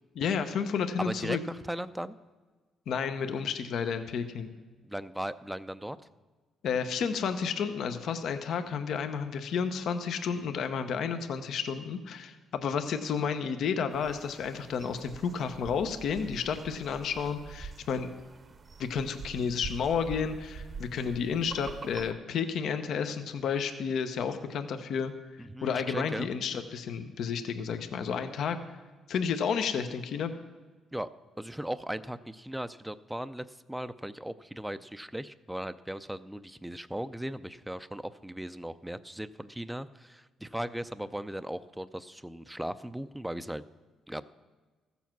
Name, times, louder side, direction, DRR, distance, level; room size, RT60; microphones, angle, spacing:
voice 1, 0.1-1.4 2.9-4.5 6.6-18.1 18.8-25.1 25.6-28.6 29.1-30.3, left 6 dB, 70° left, 8 dB, 0.8 m, -31 dB
voice 2, 1.0-2.2 4.8-6.0 25.4-26.3 30.9-31.1 31.4-43.6 44.1-44.2, right 1 dB, 5° right, 13 dB, 0.4 m, -37 dB
sound 1, 13.9-22.1, right 5 dB, 40° right, 0.8 m, -45 dB
14.5 x 7.1 x 6.0 m, 1.4 s
cardioid pair, 90°, 0 cm